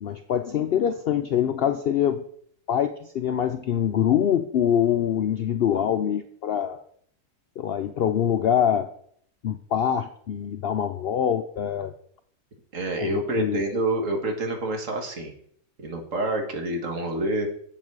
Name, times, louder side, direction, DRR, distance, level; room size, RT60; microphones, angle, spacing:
voice 1, 0.0-2.2 2.7-6.8 7.6-8.9 9.4-11.9 13.0-13.6, left 9 dB, 90° left, 8 dB, 0.5 m, -24 dB
voice 2, 12.7-15.3 15.8-17.5, right 2 dB, 55° right, 3 dB, 1.9 m, -27 dB
8.0 x 7.3 x 4.7 m, 0.63 s
omnidirectional pair, 1.6 m